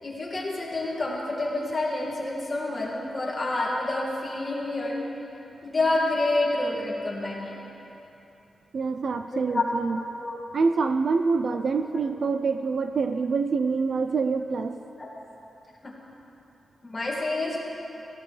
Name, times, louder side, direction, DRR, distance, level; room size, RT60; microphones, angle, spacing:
voice 1, 0.0-5.0 5.6-7.6 9.3-9.6 9.9-10.4 11.9-12.0 15.0-15.1 15.8-15.9 16.8-17.6, left 2 dB, 25° left, -4 dB, 2.0 m, -28 dB
voice 2, 8.7-10.0 10.5-14.8, right 4 dB, 50° right, 8 dB, 0.4 m, -26 dB
18.0 x 14.5 x 3.2 m, 2.9 s
wide cardioid pair, 180°, 0 cm